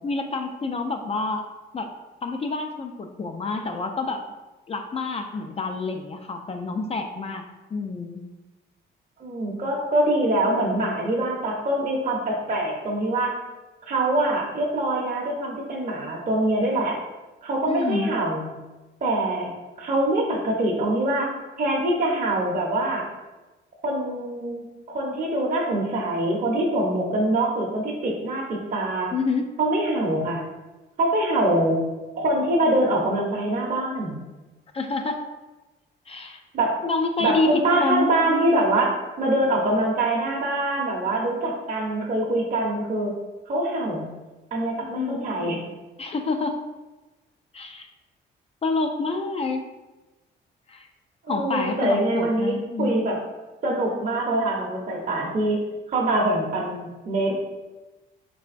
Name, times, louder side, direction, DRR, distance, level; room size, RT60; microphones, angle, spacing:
voice 1, 0.0-1.5 1.7-1.9 2.2-4.3 4.7-8.3 17.7-18.1 29.1-29.5 34.7-35.2 36.1-36.4 36.8-38.6 44.8-45.5 46.0-46.6 47.5-47.9 48.6-49.6 50.7-50.9 51.3-53.0, left 3 dB, 30° left, 5 dB, 0.3 m, -28 dB
voice 2, 9.2-13.4 13.9-17.0 17.4-18.5 19.0-21.3 21.6-23.0 23.8-29.1 29.6-30.4 31.0-31.8 32.2-34.2 36.5-36.8 37.2-43.1 43.5-44.1 44.5-45.6 51.2-53.2 53.6-57.3, right 1 dB, 40° right, -3 dB, 0.7 m, -24 dB
3.7 x 3.4 x 2.5 m, 1.1 s
cardioid pair, 90°, 20 cm